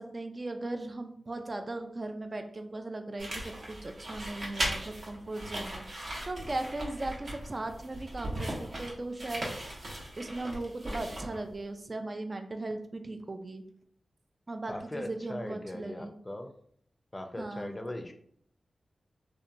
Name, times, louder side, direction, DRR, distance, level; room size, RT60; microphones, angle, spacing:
voice 1, 0.0-9.5 9.9-13.6 14.5-16.1 17.4-17.7, right 2 dB, 45° right, 6 dB, 0.3 m, -38 dB
sound 1, 3.2-11.6, right 1 dB, 65° right, 0.8 m, -38 dB
voice 2, 14.7-16.5 17.1-18.1, left 1 dB, 25° left, 6 dB, 0.4 m, -39 dB
2.7 x 2.1 x 2.5 m, 0.63 s
cardioid pair, 40°, 0 cm